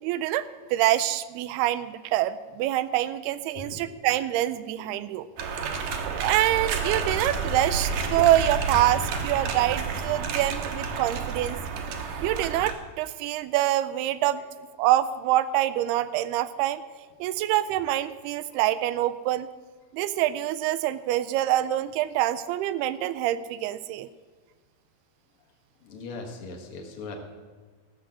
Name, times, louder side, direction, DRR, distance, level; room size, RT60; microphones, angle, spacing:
voice 1, 0.0-5.3 6.2-11.6 12.2-14.4 14.8-16.8 17.2-19.5 19.9-24.1, right 13 dB, 85° right, 14 dB, 2.5 m, -25 dB
sound 1, 5.4-12.7, right 5 dB, 65° right, 2.2 m, -30 dB
voice 2, 25.8-27.2, left 3 dB, 50° left, 2 dB, 1.8 m, -39 dB
14.5 x 6.5 x 7.6 m, 1.4 s
omnidirectional pair, 4.6 m